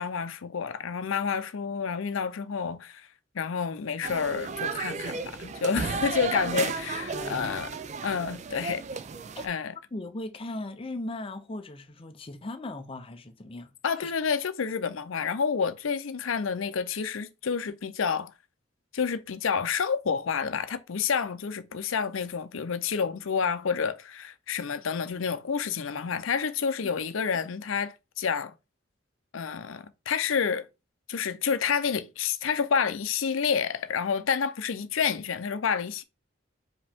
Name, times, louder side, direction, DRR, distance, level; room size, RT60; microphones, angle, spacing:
voice 1, 0.0-3.1 3.3-7.7 8.0-8.8 9.4-9.7 13.8-18.3 18.9-28.5 29.3-30.7 31.1-36.0, left 6 dB, 80° left, 0.5 m, -29 dB
sound 1, 4.0-9.5, right 4 dB, 35° right, 0.3 m, -33 dB
voice 2, 7.1-7.6 9.4-9.5 9.9-13.7 14.0-14.1 26.8-26.9, left 2 dB, 25° left, 0.6 m, -38 dB
5.1 x 2.9 x 3.5 m
head